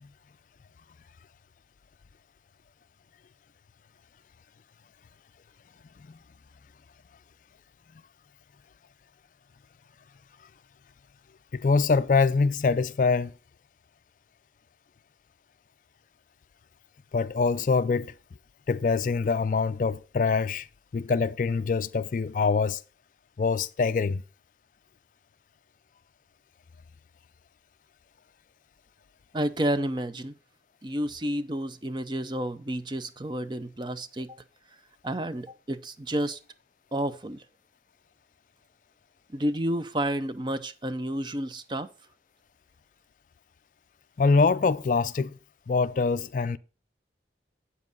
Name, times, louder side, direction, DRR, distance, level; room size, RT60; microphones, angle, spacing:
voice 1, 11.5-13.3 17.1-18.2 18.7-20.7 20.9-22.8 23.4-24.2 44.2-45.4 45.7-46.6, left 4 dB, 45° left, 0.3 m, -24 dB
voice 2, 29.3-30.3 30.8-34.4 35.0-36.4 36.9-37.4 39.3-41.9, right 1 dB, 25° right, 0.5 m, -30 dB
8.3 x 7.4 x 3.9 m
head